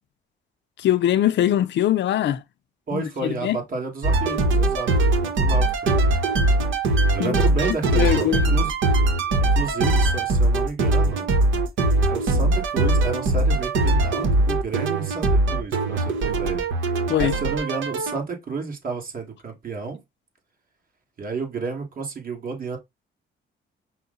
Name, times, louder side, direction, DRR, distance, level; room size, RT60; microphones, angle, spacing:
voice 1, 0.8-2.4 2.9-3.6 7.2-7.4 7.9-8.5 17.1-17.4, left 11 dB, 65° left, 0.5 m, -22 dB
voice 2, 2.9-4.9 5.2-5.7 7.1-8.7 9.5-11.3 12.1-16.7 17.0-20.0 21.2-22.8, right 4 dB, 45° right, 1.8 m, -31 dB
sound 1, 4.0-18.2, right 2 dB, 75° right, 1.1 m, -21 dB
5.5 x 2.2 x 3.8 m
cardioid pair, 90°, 20 cm